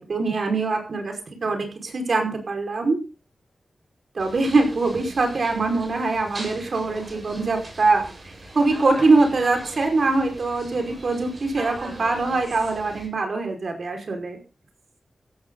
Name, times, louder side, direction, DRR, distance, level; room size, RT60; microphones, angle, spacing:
voice 1, 0.0-3.0 4.2-8.1 8.6-14.4, right 3 dB, 60° right, 4 dB, 5.3 m, -23 dB
sound 1, 4.2-13.1, right 2 dB, 35° right, 7.5 m, -40 dB
16.0 x 14.0 x 4.1 m, 0.34 s
wide cardioid pair, 130°, 0 cm